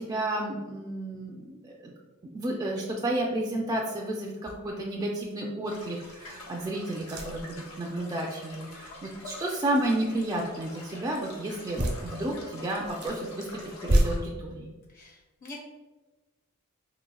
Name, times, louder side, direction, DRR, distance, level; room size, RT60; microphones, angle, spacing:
voice 1, 0.0-1.9 2.3-13.5 13.8-14.7, right 1 dB, 20° right, -2 dB, 0.3 m, -32 dB
sound 1, 4.5-4.9 5.4-5.5 7.0-7.6 11.7-12.0 12.7-13.2 13.7-14.0, right 1 dB, 75° right, 1.0 m, -28 dB
sound 2, 5.7-14.2, left 2 dB, 85° left, 0.8 m, -46 dB
voice 2, 14.9-15.6, left 2 dB, 40° left, -2 dB, 0.6 m, -45 dB
4.0 x 2.6 x 2.2 m, 1.2 s
head